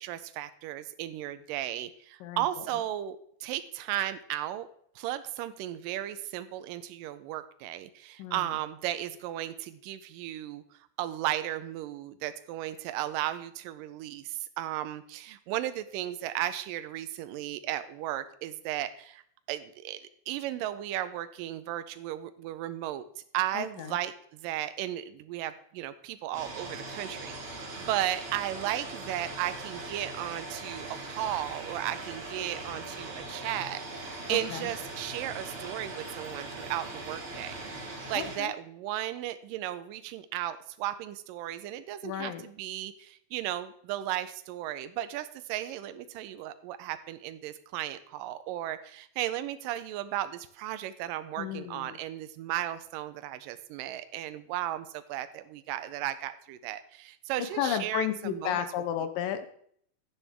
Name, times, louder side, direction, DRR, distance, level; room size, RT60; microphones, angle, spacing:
voice 1, 0.0-4.7 5.0-10.6 11.0-19.2 19.5-23.0 23.3-37.6 38.1-58.7, right 13 dB, 80° right, 11 dB, 2.1 m, -35 dB
voice 2, 2.2-2.6 8.2-8.5 23.5-24.0 34.3-34.7 38.1-38.5 42.0-42.4 51.4-52.0 57.6-59.5, left 10 dB, 75° left, 9 dB, 2.3 m, -33 dB
sound 1, 26.3-38.4, right 2 dB, 50° right, 3.4 m, -40 dB
12.0 x 9.9 x 3.4 m, 0.63 s
omnidirectional pair, 4.2 m